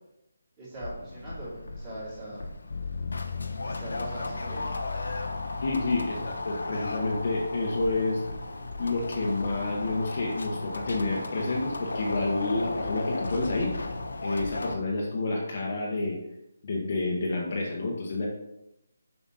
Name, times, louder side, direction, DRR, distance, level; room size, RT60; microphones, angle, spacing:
voice 1, 0.6-2.4 3.3-4.7, right 1 dB, 15° right, -9 dB, 3.2 m, -41 dB
sound 1, 0.8-14.7, left 2 dB, 85° left, 1.0 m, -35 dB
sound 2, 2.7-10.5 11.0-11.8, left 5 dB, 55° left, 0.3 m, -40 dB
voice 2, 5.6-8.2 8.8-13.7 14.2-16.2 16.6-18.3, left 2 dB, 35° left, -2 dB, 1.2 m, -29 dB
7.4 x 6.0 x 4.1 m, 0.85 s
hypercardioid pair, 175°, 0 cm